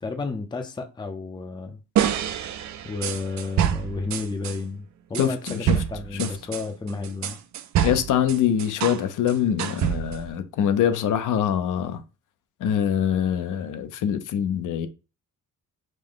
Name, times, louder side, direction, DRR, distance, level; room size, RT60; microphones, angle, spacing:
voice 1, 0.0-1.8 2.8-4.8 5.1-7.4, left 4 dB, 15° left, 0.5 m, -32 dB
sound 1, 2.0-4.6 5.1-9.0 9.3-10.3, right 9 dB, 55° right, 0.5 m, -26 dB
voice 2, 5.2-5.8 6.1-6.3 7.8-12.0 12.6-14.9, left 9 dB, 65° left, 0.6 m, -24 dB
5.2 x 2.1 x 3.8 m
cardioid pair, 135°, 33 cm